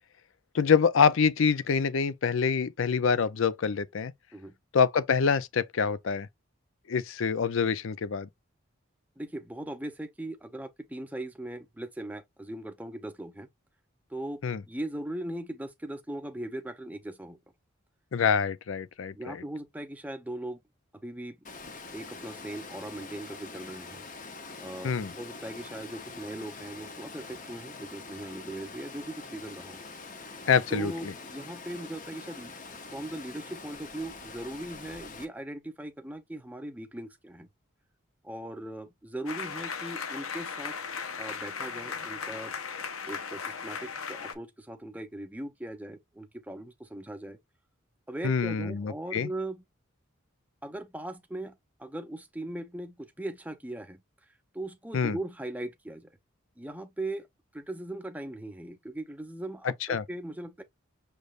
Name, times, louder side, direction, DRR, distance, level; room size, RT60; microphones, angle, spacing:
voice 1, 0.5-4.1 4.7-6.3 6.9-8.3 14.4-14.6 18.1-19.4 24.8-25.1 30.5-31.1 48.2-49.3 54.9-55.2 59.9-60.0, left 6 dB, 70° left, 0.5 m, -26 dB
voice 2, 9.2-13.5 14.1-17.4 19.1-20.6 21.0-21.4 21.9-24.1 24.6-29.8 30.7-32.5 32.9-37.5 38.2-40.8 41.2-42.5 43.0-47.4 48.1-49.6 50.6-54.0 54.5-56.1 56.6-57.3 57.5-60.6, right 1 dB, 5° right, 0.6 m, -39 dB
Water, 21.4-35.2, left 3 dB, 40° left, 0.8 m, -44 dB
sound 1, 39.3-44.3, left 6 dB, 90° left, 0.9 m, -37 dB
6.5 x 3.3 x 2.5 m
head